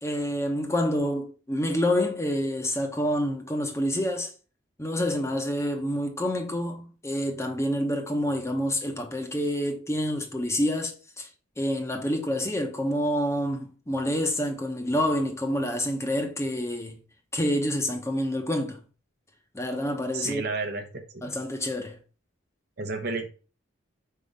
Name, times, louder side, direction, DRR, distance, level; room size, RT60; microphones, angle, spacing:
voice 1, 0.0-4.3 4.8-11.3 11.6-17.0 17.3-18.8 19.5-20.4 21.2-22.0, equal, 15° left, 0.8 m, -28 dB
voice 2, 20.1-21.4 22.8-23.3, right 3 dB, 55° right, 0.8 m, -32 dB
5.2 x 3.7 x 5.2 m
head